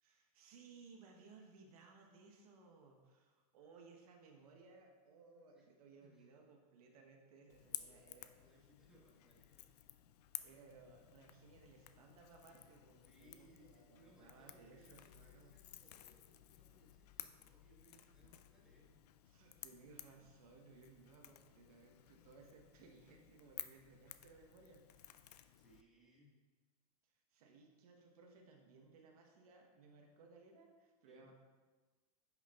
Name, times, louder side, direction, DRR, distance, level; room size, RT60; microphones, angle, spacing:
voice 1, 0.0-8.3 10.4-15.8 18.2-18.3 19.2-25.3 27.0-31.3, right 4 dB, 70° right, 2 dB, 1.1 m, -62 dB
Crackle / Crack, 7.5-25.8, left 12 dB, 85° left, 0.4 m, -55 dB
voice 2, 7.6-9.7 13.0-19.0 22.2-22.5 25.6-26.4 31.1-31.3, equal, 5° right, -5 dB, 1.4 m, -68 dB
10.0 x 5.7 x 2.4 m, 1.4 s
supercardioid pair, 150°, 20 cm